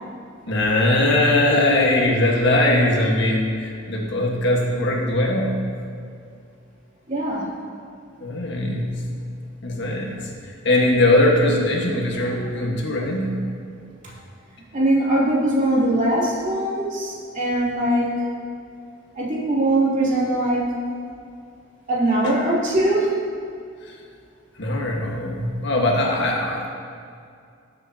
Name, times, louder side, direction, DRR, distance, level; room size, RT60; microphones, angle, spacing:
voice 1, 0.5-5.7 8.2-9.0 9.6-10.2 10.6-13.3 22.2-22.3 24.6-26.7, left 1 dB, 65° left, -1 dB, 1.5 m, -20 dB
voice 2, 7.1-7.5 14.7-18.1 19.2-20.8 21.9-23.1, right 1 dB, 40° right, -6 dB, 2.8 m, -21 dB
18.0 x 7.9 x 2.9 m, 2.3 s
head